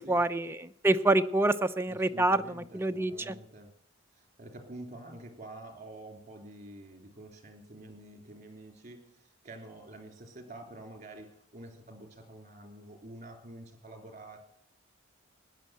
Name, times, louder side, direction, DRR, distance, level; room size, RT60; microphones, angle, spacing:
voice 1, 0.0-2.4 2.7-3.3, right 2 dB, 10° right, 8 dB, 0.6 m, -26 dB
voice 2, 1.8-3.8 4.1-14.4, right 1 dB, 35° right, 5 dB, 3.2 m, -48 dB
16.0 x 10.5 x 7.6 m, 0.77 s
head